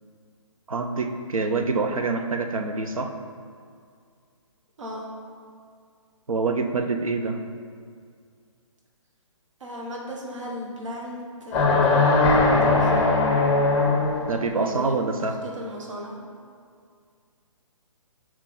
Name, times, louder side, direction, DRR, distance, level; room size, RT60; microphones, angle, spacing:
voice 1, 0.7-3.2 6.3-7.4 14.3-15.4, right 3 dB, 85° right, 5 dB, 0.6 m, -26 dB
voice 2, 9.6-13.2 14.6-15.1 15.4-16.3, equal, 65° right, -2 dB, 1.2 m, -37 dB
sound 1, 11.5-14.4, left 3 dB, 15° left, 0.6 m, -19 dB
6.1 x 4.4 x 4.2 m, 2.2 s
figure-of-eight pair, 140°, 17 cm